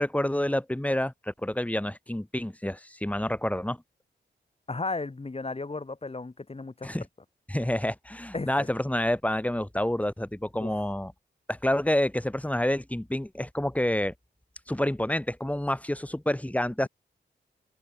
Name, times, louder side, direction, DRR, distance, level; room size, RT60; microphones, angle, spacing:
voice 1, 0.0-3.8 6.8-7.1 7.5-11.1 11.5-14.1 14.7-16.9, left 1 dB, 5° left, 5.8 m, -28 dB
voice 2, 4.7-6.9 8.3-8.7 10.6-10.8, left 3 dB, 30° left, 5.9 m, -34 dB
open air
wide cardioid pair, 85°, 18 cm